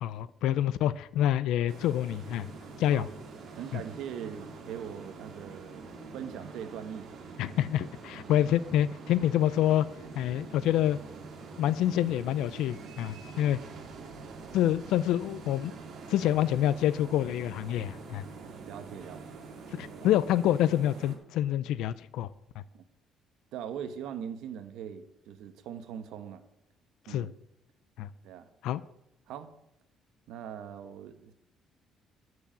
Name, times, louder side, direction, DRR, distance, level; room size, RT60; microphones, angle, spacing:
voice 1, 0.0-2.5 2.8-3.1 3.7-3.8 7.4-9.9 10.1-11.0 11.6-13.6 14.5-15.7 16.1-18.2 19.7-22.3 27.1-27.3 28.0-28.1 28.6-28.8, left 12 dB, 80° left, 16 dB, 0.4 m, -27 dB
sound 1, 1.7-21.2, right 4 dB, 45° right, 2.0 m, -45 dB
voice 2, 3.6-7.4 13.3-13.4 14.5-14.7 18.4-19.4 19.9-20.2 22.7-22.8 23.5-26.4 27.1-27.3 28.2-28.5 29.3-29.5 30.3-31.3, right 8 dB, 75° right, 9 dB, 1.0 m, -41 dB
12.0 x 4.8 x 7.5 m, 0.83 s
cardioid pair, 170°, 0 cm